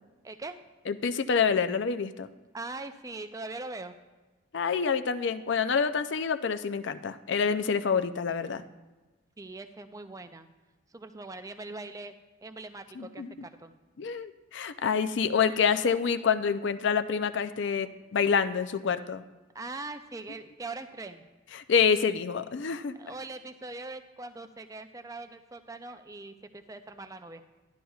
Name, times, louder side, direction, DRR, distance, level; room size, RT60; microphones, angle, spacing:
voice 1, 0.2-0.6 2.5-3.9 9.4-10.5 10.9-12.1 12.4-13.7 19.5-21.2 22.9-27.4, right 3 dB, 15° right, 9 dB, 0.4 m, -41 dB
voice 2, 0.9-2.3 4.5-8.6 13.0-13.3 14.0-19.2 21.5-23.0, left 6 dB, 55° left, 10 dB, 0.4 m, -27 dB
12.5 x 11.5 x 2.3 m, 1.2 s
head